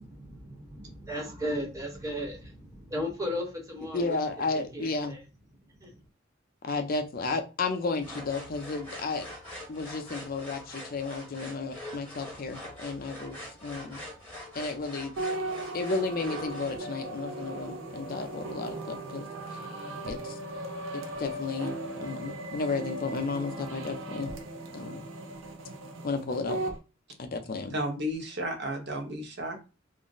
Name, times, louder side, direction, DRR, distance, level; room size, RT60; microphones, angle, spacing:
voice 1, 0.0-4.2 4.5-5.2 5.8-5.9, equal, 15° right, 0.9 m, -36 dB
voice 2, 3.8-5.2 6.6-9.3 9.7-14.0 14.5-15.1 15.7-19.3 19.5-19.6 20.0-20.4 20.9-24.3 24.7-25.0 26.0-26.6 27.2-27.8, left 3 dB, 50° left, 0.5 m, -33 dB
sound 1, 8.0-16.8, left 1 dB, 10° left, 1.1 m, -44 dB
sound 2, 15.2-26.8, right 2 dB, 80° right, 0.6 m, -37 dB
voice 3, 27.7-29.7, equal, 55° right, 0.9 m, -33 dB
2.5 x 2.0 x 3.8 m
head